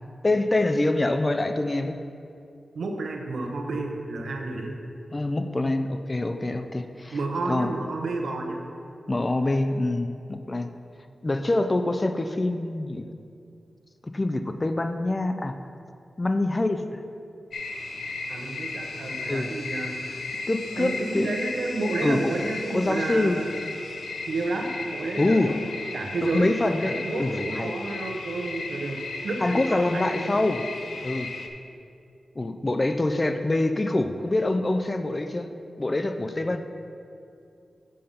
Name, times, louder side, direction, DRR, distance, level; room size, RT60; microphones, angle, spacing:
voice 1, 0.2-2.0 5.1-7.2 7.5-7.7 9.1-10.7 11.2-13.0 14.0-15.5 16.2-17.0 19.3-19.5 20.5-21.3 22.0-22.3 22.7-23.4 25.2-25.6 26.2-27.8 29.4-30.6 31.0-31.3 32.4-35.5 35.8-36.6, left 2 dB, 30° left, 7 dB, 0.4 m, -25 dB
voice 2, 2.7-4.8 7.1-8.6 18.3-20.2 20.7-23.6 24.3-25.5 25.9-26.5 26.8-30.4, right 2 dB, 85° right, 2 dB, 0.9 m, -30 dB
sound 1, 17.5-31.5, left 3 dB, 90° left, 0.6 m, -35 dB
7.7 x 5.1 x 5.6 m, 2.5 s
wide cardioid pair, 85°, 0 cm